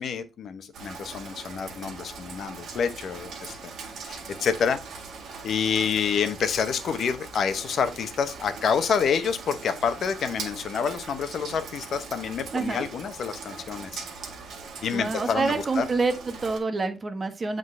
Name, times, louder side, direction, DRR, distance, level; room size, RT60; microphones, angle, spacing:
voice 1, 0.0-3.7 4.0-4.8 5.4-14.0 14.8-15.9, left 6 dB, 60° left, 0.8 m, -28 dB
Rain, 0.7-16.6, right 4 dB, 65° right, 1.7 m, -41 dB
voice 2, 12.5-12.8 14.9-17.6, right 3 dB, 35° right, 1.1 m, -27 dB
7.6 x 3.8 x 3.2 m
cardioid pair, 90°, 0 cm